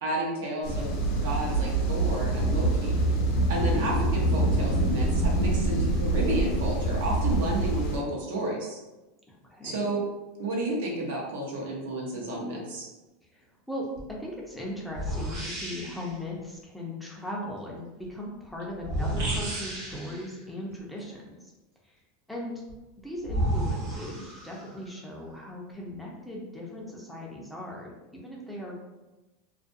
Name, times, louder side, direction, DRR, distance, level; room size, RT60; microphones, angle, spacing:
voice 1, 0.0-1.0 1.2-3.0 3.5-8.8 9.6-10.0 10.4-12.9 19.2-19.6, right 1 dB, 75° right, -2 dB, 0.8 m, -31 dB
sound 1, 0.6-8.0, right 2 dB, 65° left, 0.7 m, -25 dB
voice 2, 3.5-3.9 9.3-9.9 13.3-21.5 21.8-22.0 22.3-22.6 23.0-28.8, left 1 dB, ahead, -3 dB, 0.5 m, -38 dB
sound 2, 14.0-14.1 14.9-16.2 18.8-20.4 22.7-22.8 23.2-24.8, right 1 dB, 45° right, 0.9 m, -32 dB
2.4 x 2.2 x 2.5 m, 1.1 s
supercardioid pair, 140°, 0 cm